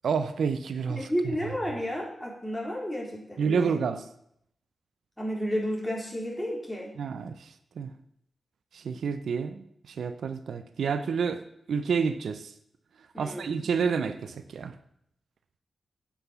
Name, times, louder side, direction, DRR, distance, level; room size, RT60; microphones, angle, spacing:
voice 1, 0.0-1.1 3.4-4.0 7.0-7.5 7.8-7.9 8.7-12.5 13.2-14.8, right 6 dB, 80° right, 11 dB, 0.6 m, -29 dB
voice 2, 1.0-3.8 5.2-6.9 13.1-13.7, equal, 10° left, -2 dB, 3.9 m, -32 dB
9.8 x 5.8 x 7.0 m, 0.72 s
cardioid pair, 60°, 0 cm